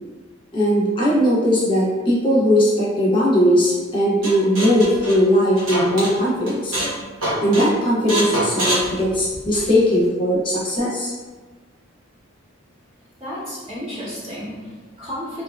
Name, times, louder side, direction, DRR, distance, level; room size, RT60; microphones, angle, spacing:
voice 1, 0.5-6.8 7.4-11.1, equal, 25° left, -6 dB, 0.7 m, -19 dB
sound 1, 4.2-6.1 6.5-7.0 7.2-7.7 8.1-9.7, right 1 dB, 85° right, 1.0 m, -24 dB
voice 2, 13.2-15.4, equal, 20° right, -13 dB, 0.8 m, -33 dB
2.7 x 2.2 x 2.3 m, 1.3 s
head